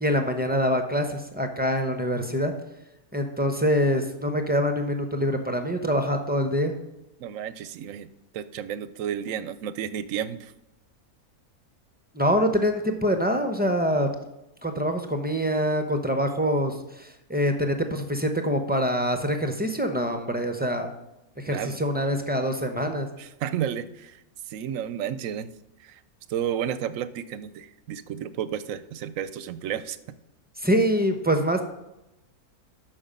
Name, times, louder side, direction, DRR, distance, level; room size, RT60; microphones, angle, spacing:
voice 1, 0.0-2.5 3.1-6.7 12.1-14.1 14.6-20.9 21.4-23.1 30.6-31.6, equal, 10° right, 5 dB, 0.5 m, -25 dB
voice 2, 7.2-8.1 8.3-10.5 21.5-21.8 23.2-24.2 24.5-25.5 25.8-26.0 26.3-30.0, right 9 dB, 70° right, 14 dB, 0.9 m, -32 dB
8.7 x 6.1 x 5.2 m, 0.91 s
omnidirectional pair, 1.6 m